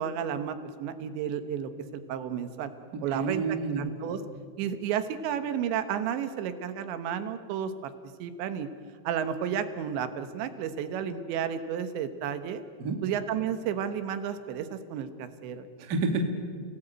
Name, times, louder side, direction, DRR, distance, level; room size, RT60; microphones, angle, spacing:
voice 1, 0.0-2.7 3.0-4.2 4.6-7.9 8.2-8.7 9.0-12.6 13.0-15.7, right 8 dB, 80° right, 10 dB, 3.4 m, -32 dB
voice 2, 3.1-3.9 12.8-13.0 15.8-16.2, right 4 dB, 40° right, 4 dB, 1.6 m, -29 dB
30.0 x 18.0 x 9.1 m, 2.1 s
omnidirectional pair, 5.2 m